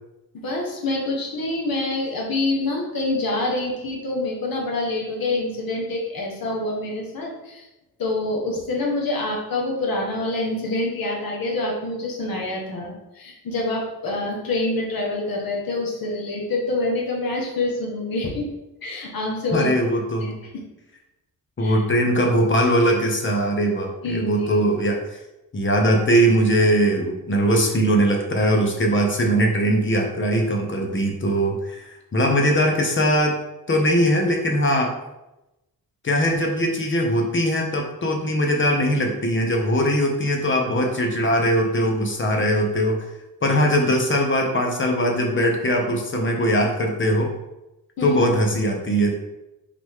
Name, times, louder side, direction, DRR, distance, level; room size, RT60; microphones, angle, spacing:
voice 1, 0.4-7.7 8.0-18.5 18.8-19.7 20.2-20.5 21.6-21.8 24.0-24.6 48.0-48.2, left 2 dB, 75° left, -1 dB, 1.6 m, -26 dB
voice 2, 19.5-20.3 21.6-25.0 25.5-33.4 33.7-34.9 36.0-43.1 43.4-47.3 48.0-49.2, equal, 35° left, 1 dB, 1.0 m, -20 dB
6.2 x 4.1 x 3.7 m, 0.96 s
wide cardioid pair, 155°, 35 cm